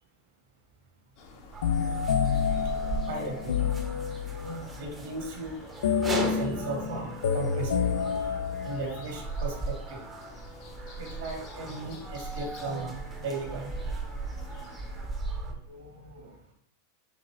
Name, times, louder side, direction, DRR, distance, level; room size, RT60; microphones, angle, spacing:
sound 1, 1.2-15.1, left 3 dB, 50° left, 1.0 m, -50 dB
sound 2, 1.5-15.5, right 3 dB, 20° right, 0.7 m, -38 dB
sound 3, 1.6-4.6 5.8-9.1, left 7 dB, 75° left, 0.4 m, -28 dB
voice 1, 3.0-3.5 4.3-5.6 6.2-8.2 8.6-10.0 11.0-13.9 15.5-16.3, right 2 dB, 70° right, 0 dB, 1.5 m, -37 dB
5.0 x 2.8 x 3.1 m, 0.66 s
hypercardioid pair, 100°, 0 cm